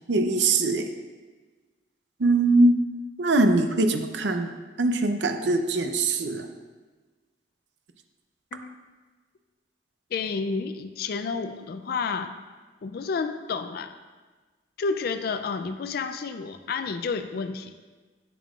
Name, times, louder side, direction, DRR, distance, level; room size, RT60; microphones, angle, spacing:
voice 1, 0.1-0.9 2.2-2.8 3.2-4.5 4.8-6.5, right 2 dB, 75° right, 7 dB, 0.6 m, -22 dB
voice 2, 10.1-12.3 12.8-13.9 14.8-17.8, left 4 dB, 55° left, 9 dB, 0.3 m, -30 dB
8.3 x 7.3 x 2.4 m, 1.3 s
head